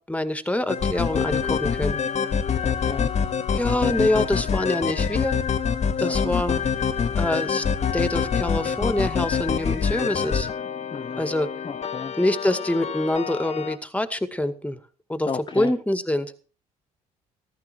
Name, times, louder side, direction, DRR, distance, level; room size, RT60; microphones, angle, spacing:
voice 1, 0.1-2.0 3.5-5.4 6.0-6.6 7.2-7.6 7.9-10.5 11.2-11.5 12.2-14.8 15.1-16.3, left 1 dB, 10° left, 11 dB, 2.1 m, -25 dB
sound 1, 0.7-13.8, left 6 dB, 45° left, 1.7 m, -26 dB
voice 2, 2.6-3.1 6.0-6.3 10.9-11.2 11.6-12.1 15.3-15.7, left 5 dB, 30° left, 8 dB, 0.9 m, -33 dB
14.5 x 13.0 x 4.6 m, 0.36 s
supercardioid pair, 70°, 16 cm